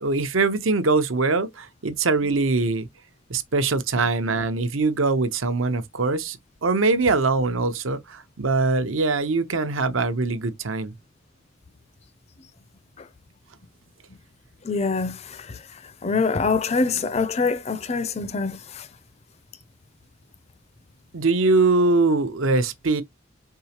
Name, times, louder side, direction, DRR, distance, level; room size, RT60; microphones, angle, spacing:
voice 1, 0.0-2.9 3.3-10.9 21.1-23.0, right 3 dB, 80° right, 0.8 m, -22 dB
voice 2, 14.7-15.2 16.0-18.5, left 4 dB, 30° left, 0.4 m, -24 dB
4.6 x 3.8 x 2.8 m
head